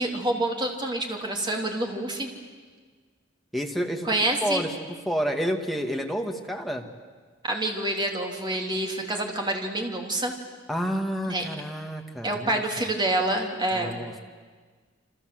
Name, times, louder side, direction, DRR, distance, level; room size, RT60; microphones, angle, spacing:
voice 1, 0.0-2.3 4.0-4.7 7.4-10.3 11.3-11.4 12.2-14.0, right 1 dB, 25° right, 2 dB, 3.3 m, -27 dB
voice 2, 3.5-4.1 4.4-4.7 5.1-6.8 10.7-12.6 13.7-14.2, equal, ahead, 2 dB, 2.0 m, -29 dB
28.0 x 26.5 x 7.9 m, 1.5 s
head